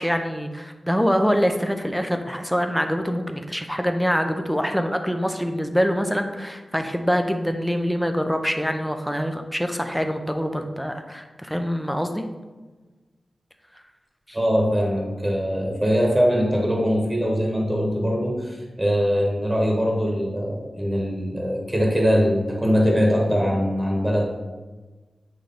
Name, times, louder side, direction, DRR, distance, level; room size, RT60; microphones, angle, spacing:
voice 1, 0.0-12.3 14.3-14.4, equal, ahead, 5 dB, 0.6 m, -24 dB
voice 2, 14.3-24.2, equal, 15° right, -2 dB, 1.2 m, -22 dB
8.5 x 3.1 x 3.9 m, 1.3 s
wide cardioid pair, 95°, 0 cm